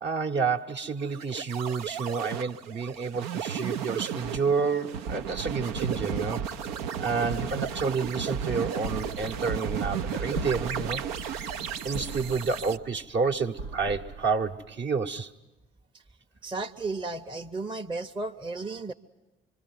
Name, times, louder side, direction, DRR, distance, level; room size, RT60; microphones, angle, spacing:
voice 1, 0.0-6.5 7.0-11.5 11.8-15.3, right 5 dB, 35° right, 5 dB, 1.2 m, -30 dB
sound 1, 1.0-12.8, right 8 dB, 65° right, 0.9 m, -34 dB
sound 2, 5.7-15.0, right 2 dB, 85° right, 1.2 m, -42 dB
voice 2, 16.4-18.9, right 3 dB, 15° right, 3 dB, 0.9 m, -34 dB
25.0 x 25.0 x 9.5 m, 1.1 s
figure-of-eight pair, 50°, 30 cm